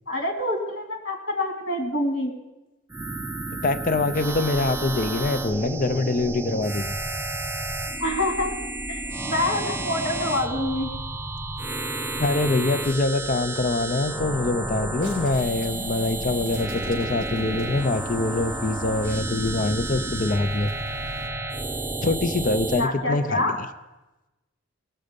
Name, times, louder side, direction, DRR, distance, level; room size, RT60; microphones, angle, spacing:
voice 1, 0.1-2.3 8.0-8.5 8.9-10.9 22.8-23.5, left 1 dB, 65° left, 2 dB, 2.4 m, -26 dB
sound 1, 2.9-22.9, right 2 dB, 10° right, 0.5 m, -31 dB
voice 2, 3.6-6.9 12.2-20.7 22.0-23.6, left 2 dB, 40° left, 11 dB, 0.5 m, -24 dB
sound 2, 15.0-21.3, equal, 45° right, 4.6 m, -41 dB
18.5 x 6.6 x 5.1 m, 1.0 s
head